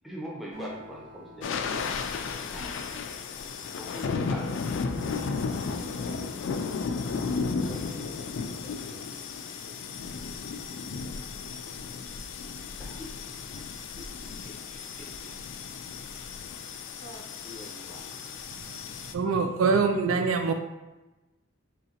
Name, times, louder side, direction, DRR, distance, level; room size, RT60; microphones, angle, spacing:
voice 1, 0.0-2.0 2.5-2.8 3.8-4.5 12.8-13.0 17.9-18.3, equal, ahead, -4 dB, 0.5 m, -41 dB
Acoustic guitar, 0.5-4.3, equal, 65° right, 1.4 m, -50 dB
sound 1, 1.4-19.1, left 4 dB, 65° left, 0.3 m, -34 dB
voice 2, 7.5-9.1 16.0-16.6 17.0-18.0, equal, 40° right, -5 dB, 1.1 m, -49 dB
voice 3, 18.8-20.5, right 4 dB, 85° right, 6 dB, 0.4 m, -25 dB
3.8 x 3.2 x 2.8 m, 1.1 s
head